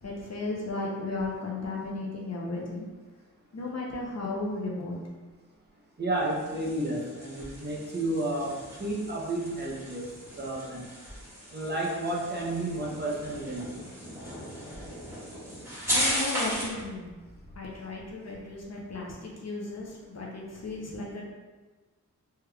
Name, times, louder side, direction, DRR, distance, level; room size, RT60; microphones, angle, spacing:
voice 1, 0.0-2.9 3.5-5.0 15.9-17.2 17.6-21.3, left 2 dB, 55° left, -3 dB, 0.7 m, -35 dB
voice 2, 6.0-10.1 10.4-10.9 11.5-13.8, right 1 dB, 35° right, -4 dB, 0.6 m, -31 dB
sound 1, 6.1-16.8, equal, 10° right, 1.3 m, -36 dB
3.3 x 3.3 x 2.2 m, 1.3 s
wide cardioid pair, 125°, 31 cm